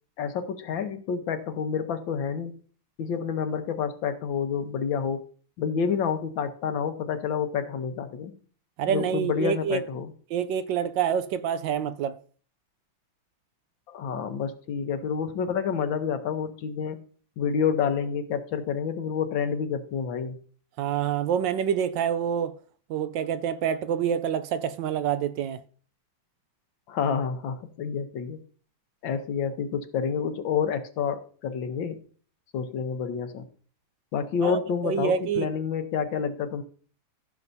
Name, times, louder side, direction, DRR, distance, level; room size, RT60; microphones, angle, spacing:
voice 1, 0.2-2.6 3.0-5.2 5.6-8.3 8.9-10.1 13.9-17.0 17.4-20.4 26.9-28.4 29.0-32.0 32.5-33.4 34.1-36.6, left 6 dB, 75° left, 1.7 m, -29 dB
voice 2, 8.8-9.8 10.3-12.2 20.8-22.6 22.9-25.6 34.4-35.5, right 8 dB, 75° right, 1.2 m, -27 dB
15.0 x 7.1 x 2.7 m
omnidirectional pair, 2.2 m